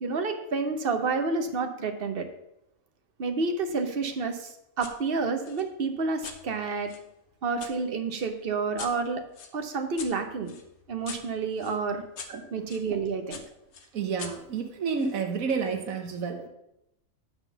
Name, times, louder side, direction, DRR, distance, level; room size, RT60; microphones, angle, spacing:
voice 1, 0.0-2.3 3.2-4.5 4.8-6.9 7.4-9.2 9.5-10.5 10.9-12.0 12.5-13.4, right 4 dB, 50° right, 6 dB, 1.0 m, -29 dB
sound 1, 4.8-5.0 5.4-7.7 8.2-12.9 13.3-15.2, left 5 dB, 60° left, 1.1 m, -45 dB
voice 2, 13.9-16.5, right 5 dB, 85° right, 4 dB, 1.4 m, -30 dB
9.2 x 3.7 x 6.9 m, 0.83 s
omnidirectional pair, 1.4 m